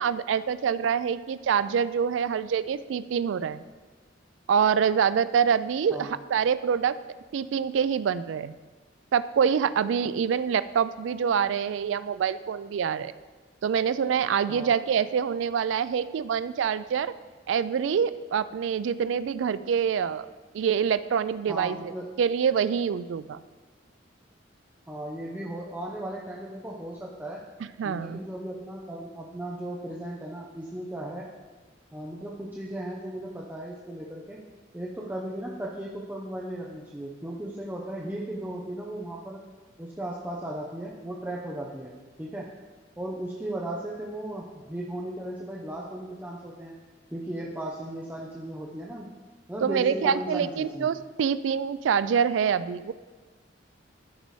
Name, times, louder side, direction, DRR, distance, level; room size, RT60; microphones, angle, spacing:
voice 1, 0.0-3.6 4.5-7.0 7.3-8.5 9.1-13.1 13.6-17.1 17.5-20.3 20.5-21.9 22.2-23.4 27.8-28.2 49.6-52.9, right 7 dB, 75° right, 14 dB, 0.3 m, -25 dB
voice 2, 21.5-22.1 24.9-27.4 27.8-31.3 31.9-34.4 34.7-39.4 39.8-41.9 42.2-42.5 43.0-46.8 47.1-49.1 49.5-50.9, right 1 dB, 10° right, -3 dB, 0.6 m, -36 dB
13.5 x 5.3 x 3.2 m, 1.3 s
head